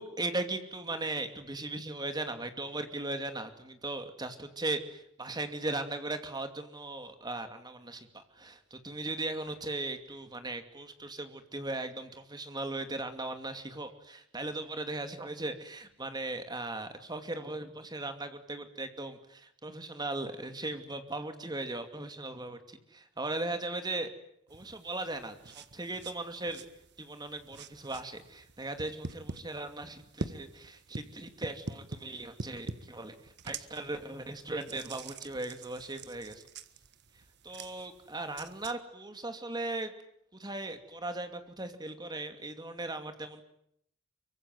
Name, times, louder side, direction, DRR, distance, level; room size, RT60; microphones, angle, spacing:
voice 1, 0.0-22.6 22.9-24.1 24.5-26.7 27.0-36.4 37.4-39.9 40.4-43.4, right 2 dB, 20° right, 8 dB, 2.6 m, -38 dB
sound 1, 24.5-38.7, right 3 dB, 55° right, 1.5 m, -46 dB
24.5 x 24.0 x 9.3 m, 0.72 s
head